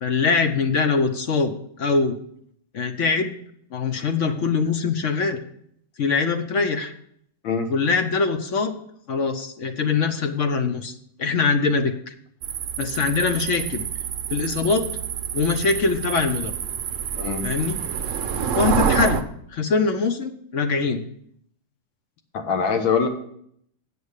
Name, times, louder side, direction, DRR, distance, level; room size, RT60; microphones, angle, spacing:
voice 1, 0.0-2.2 2.7-3.3 3.7-5.4 6.0-6.9 7.7-8.8 9.1-12.1 12.8-13.8 14.3-14.9 15.3-16.5 17.4-17.8 18.5-19.2 19.5-21.0, left 4 dB, 60° left, 7 dB, 0.8 m, -23 dB
sound 1, 12.4-19.2, right 7 dB, 70° right, 0.7 m, -27 dB
voice 2, 22.3-23.1, left 6 dB, 85° left, 5 dB, 2.0 m, -23 dB
8.5 x 6.8 x 6.5 m, 0.68 s
omnidirectional pair, 2.1 m